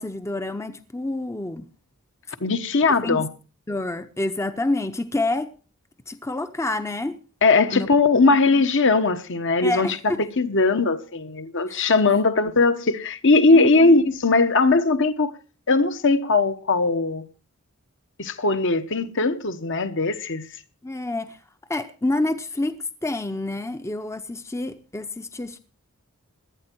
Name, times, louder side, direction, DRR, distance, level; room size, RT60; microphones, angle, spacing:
voice 1, 0.0-1.6 3.0-3.3 3.7-5.5 6.1-7.2 7.7-7.9 8.3-8.6 9.6-10.3 11.7-11.9 13.5-14.0 20.8-21.4 21.7-25.6, left 2 dB, 15° left, 0.7 m, -28 dB
voice 2, 2.4-3.3 7.4-9.9 10.2-15.3 15.7-17.2 18.2-20.4, left 3 dB, 55° left, 1.2 m, -19 dB
17.5 x 12.0 x 4.6 m
head